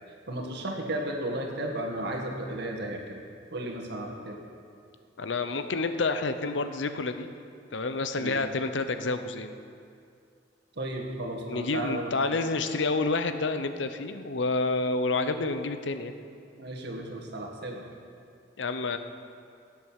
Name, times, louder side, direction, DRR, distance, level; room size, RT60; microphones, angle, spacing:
voice 1, 0.3-3.2 3.5-4.4 8.2-8.4 10.7-12.2 16.6-17.8, right 1 dB, 65° right, 0 dB, 1.9 m, -34 dB
voice 2, 5.2-7.3 7.7-9.5 11.5-16.1 18.6-19.0, left 3 dB, 75° left, 9 dB, 0.8 m, -29 dB
16.5 x 8.1 x 6.6 m, 2.4 s
head